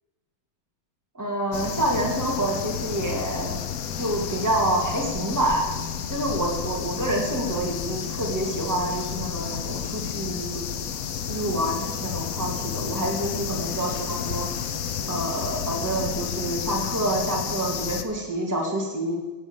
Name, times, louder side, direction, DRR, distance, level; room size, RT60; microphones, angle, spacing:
voice 1, 1.1-3.6 4.0-5.7 6.1-10.6 11.3-14.5 15.1-19.1, right 1 dB, 10° right, -2 dB, 2.4 m, -27 dB
sound 1, 1.5-18.0, left 8 dB, 60° left, 1.0 m, -31 dB
17.5 x 8.0 x 7.3 m, 1.3 s
omnidirectional pair, 2.3 m